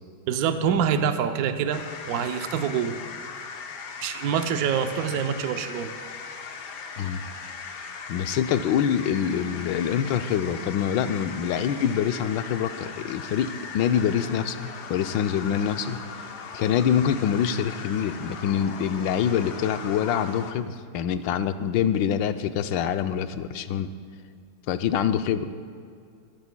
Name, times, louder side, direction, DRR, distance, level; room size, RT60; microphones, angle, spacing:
voice 1, 0.3-3.0 4.0-5.9, right 7 dB, 65° right, 7 dB, 1.0 m, -26 dB
sound 1, 1.7-20.5, left 5 dB, 65° left, 1.4 m, -39 dB
voice 2, 7.0-7.3 8.1-16.0 16.5-23.9 24.7-25.5, left 8 dB, 85° left, 10 dB, 1.3 m, -25 dB
22.0 x 14.0 x 2.2 m, 2.3 s
omnidirectional pair, 2.0 m